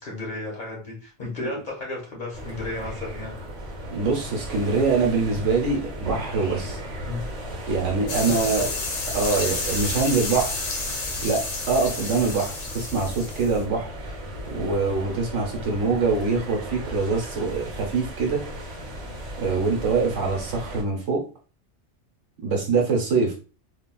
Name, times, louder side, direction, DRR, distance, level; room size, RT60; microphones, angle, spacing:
voice 1, 0.0-3.3 7.0-7.2 8.2-8.8, left 2 dB, 40° left, -3 dB, 1.2 m, -33 dB
sound 1, 2.3-20.8, equal, 40° right, 0.9 m, -36 dB
voice 2, 3.9-6.8 7.7-8.7 9.1-10.6 11.2-11.4 11.7-13.9 14.5-18.4 19.4-21.2 22.4-23.3, right 4 dB, 80° right, 1 dB, 1.2 m, -24 dB
sound 2, 8.1-13.6, left 3 dB, 85° left, 1.1 m, -30 dB
3.6 x 2.3 x 2.3 m, 0.36 s
omnidirectional pair, 1.2 m